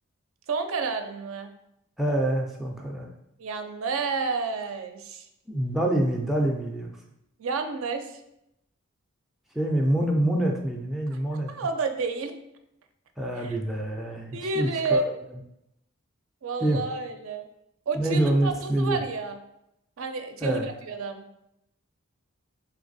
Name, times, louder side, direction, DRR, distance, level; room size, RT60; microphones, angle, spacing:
voice 1, 0.5-1.5 3.4-5.3 7.4-8.2 11.5-12.4 13.4-13.6 14.3-15.1 16.4-17.5 17.9-19.4 20.0-21.3, right 4 dB, 70° right, 7 dB, 0.4 m, -30 dB
voice 2, 2.0-3.1 5.5-6.9 9.5-11.5 13.2-15.0 16.6-16.8 17.9-19.0 20.4-20.7, right 1 dB, ahead, -1 dB, 0.3 m, -26 dB
3.4 x 3.2 x 3.9 m, 0.83 s
head